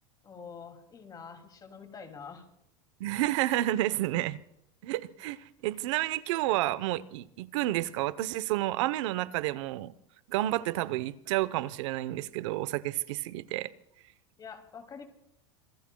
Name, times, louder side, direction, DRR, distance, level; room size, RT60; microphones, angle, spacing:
voice 1, 0.2-2.5 10.5-10.8 14.4-15.1, left 6 dB, 25° left, 2.6 m, -46 dB
voice 2, 3.0-4.4 4.8-9.9 10.3-13.7, right 16 dB, 70° right, 0.9 m, -30 dB
26.0 x 22.0 x 2.3 m
supercardioid pair, 140°, 16 cm